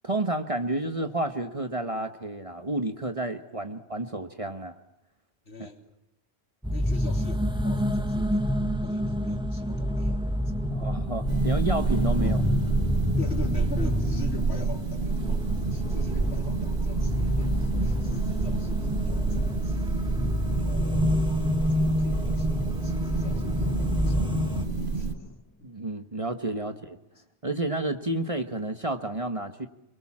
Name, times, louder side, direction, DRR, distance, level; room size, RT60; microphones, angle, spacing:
voice 1, 0.0-4.7 5.6-5.7 10.7-12.4 25.6-27.0 27.4-29.7, right 2 dB, 30° right, 7 dB, 1.4 m, -30 dB
voice 2, 5.5-5.8 6.7-10.5 10.8-10.9 12.2-12.6 13.2-19.9 20.6-25.3 25.6-25.7 26.6-26.7 27.2-27.3, left 2 dB, 65° left, 3 dB, 3.5 m, -44 dB
sound 1, 6.6-24.7, left 1 dB, 5° right, 1.7 m, -28 dB
sound 2, 11.2-25.1, right 4 dB, 50° right, 1.5 m, -29 dB
sound 3, 22.0-25.8, left 1 dB, 15° left, 1.1 m, -43 dB
29.5 x 23.0 x 7.4 m, 0.89 s
omnidirectional pair, 1.2 m